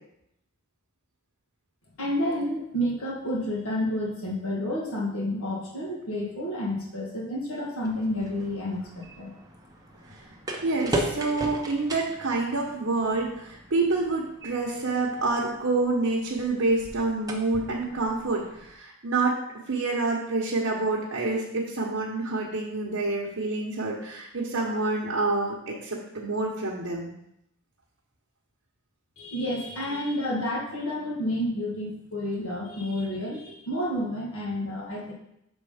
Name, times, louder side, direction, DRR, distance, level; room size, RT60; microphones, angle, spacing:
voice 1, 2.0-9.3 29.2-35.1, left 1 dB, 70° left, -3 dB, 1.5 m, -30 dB
sound 1, 7.8-18.7, right 1 dB, 15° right, 0.7 m, -38 dB
voice 2, 10.6-19.4 19.7-27.1, right 3 dB, 65° right, -3 dB, 1.0 m, -27 dB
6.2 x 3.7 x 4.9 m, 0.79 s
head